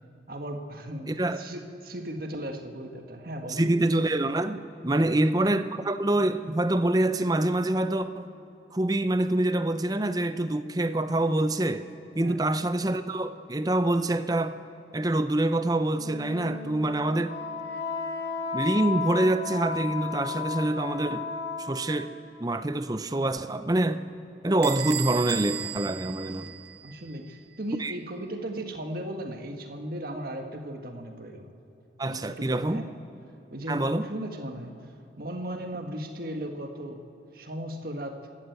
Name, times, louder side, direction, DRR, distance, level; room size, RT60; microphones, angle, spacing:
voice 1, 0.3-1.1 1.4-3.6 4.9-5.2 12.2-12.4 26.8-31.5 32.0-32.9 33.5-34.7 35.2-37.1 37.3-38.2, right 1 dB, 50° right, 4 dB, 1.7 m, -36 dB
voice 2, 1.1-1.4 3.5-8.3 8.7-11.9 12.1-14.6 14.9-17.4 18.5-21.3 21.6-22.1 22.4-24.0 24.4-26.5 27.8-27.9 32.0-32.8 33.7-34.1, right 1 dB, 20° right, 11 dB, 0.6 m, -26 dB
Wind instrument woodwind instrument, 15.9-22.1, left 5 dB, 60° left, 3.5 m, -34 dB
Bell / Squeak, 24.6-27.1, right 12 dB, 65° right, 0.7 m, -36 dB
29.5 x 13.5 x 8.2 m, 2.9 s
head